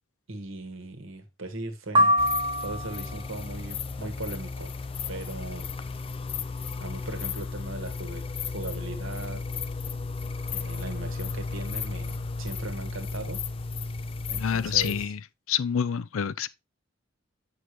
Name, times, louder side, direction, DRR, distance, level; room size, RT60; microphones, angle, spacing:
voice 1, 0.3-2.1 2.6-4.7 5.1-5.7 6.8-9.4 10.5-13.4 14.3-15.1, right 2 dB, 75° right, 1.7 m, -38 dB
sound 1, 1.9-3.2, equal, 25° right, 0.6 m, -23 dB
sound 2, 2.2-15.1, left 4 dB, 25° left, 0.3 m, -34 dB
voice 2, 14.4-15.2 15.5-16.5, left 8 dB, 85° left, 0.5 m, -27 dB
8.3 x 6.3 x 3.1 m
head